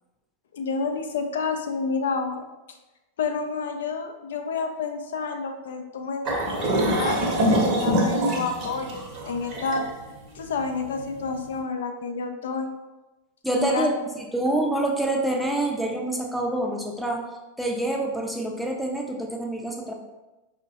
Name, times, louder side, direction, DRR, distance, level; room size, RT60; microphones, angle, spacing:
voice 1, 0.5-2.4 3.2-9.8 10.3-12.7 13.6-13.9, left 4 dB, 60° left, 4 dB, 0.3 m, -29 dB
sound 1, 6.2-11.4, right 1 dB, 35° right, 0.7 m, -24 dB
voice 2, 13.4-17.2 17.6-19.9, right 1 dB, ahead, 0 dB, 0.5 m, -26 dB
5.1 x 2.1 x 2.6 m, 1.1 s
figure-of-eight pair, 90°, 0 cm